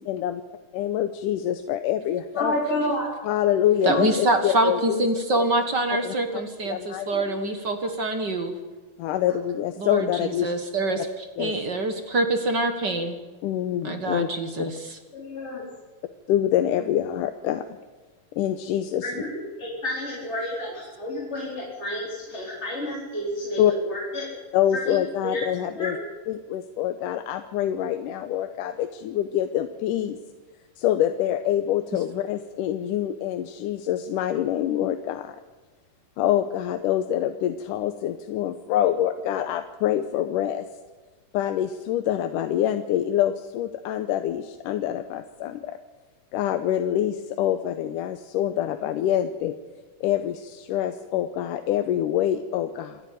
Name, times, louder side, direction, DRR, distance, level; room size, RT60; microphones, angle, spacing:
voice 1, 0.1-0.4 0.7-2.5 3.2-5.1 6.0-6.1 6.7-7.3 9.0-10.5 11.4-11.5 13.4-14.3 14.6-14.7 16.3-17.6 18.4-19.1 23.6-23.7 24.5-26.0 26.3-30.2 30.8-35.4 36.2-40.7 41.3-45.8 46.3-49.5 50.0-53.0, left 11 dB, 85° left, 8 dB, 2.4 m, -25 dB
voice 2, 2.3-3.1 3.9-4.0 7.1-7.2 15.1-15.6 19.0-19.3 19.6-24.4 24.7-25.4 25.8-26.0, left 1 dB, 20° left, -5 dB, 4.7 m, -30 dB
voice 3, 3.8-8.5 9.8-13.2 13.8-15.0, right 2 dB, 40° right, 7 dB, 1.7 m, -25 dB
27.0 x 11.5 x 9.3 m, 1.3 s
omnidirectional pair, 3.7 m